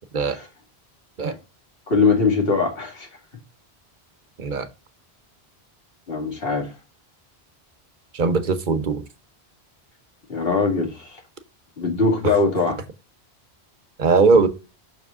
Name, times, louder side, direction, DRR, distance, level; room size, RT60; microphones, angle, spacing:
voice 1, 1.9-3.1 6.1-6.7 10.3-11.2 11.8-12.8, left 4 dB, 65° left, 2.2 m, -21 dB
voice 2, 8.1-9.0 12.2-12.3 14.0-14.5, right 4 dB, 50° right, 1.0 m, -19 dB
6.4 x 4.9 x 3.6 m
omnidirectional pair, 1.1 m